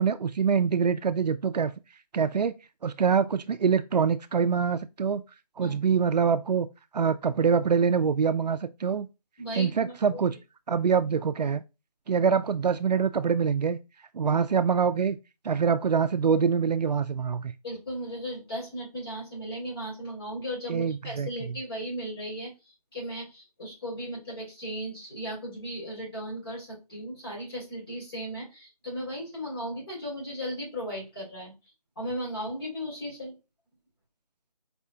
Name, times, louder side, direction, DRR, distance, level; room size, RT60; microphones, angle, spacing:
voice 1, 0.0-1.7 2.1-2.5 2.8-5.2 5.6-6.7 6.9-9.1 9.6-10.3 10.7-11.6 12.1-13.8 14.1-15.2 15.4-17.5 20.7-21.3, right 6 dB, 80° right, 0.4 m, -25 dB
voice 2, 9.4-9.9 17.6-22.5 22.9-31.5 32.0-33.4, equal, 35° left, 2.7 m, -36 dB
4.2 x 3.5 x 2.8 m
figure-of-eight pair, 175°, 21 cm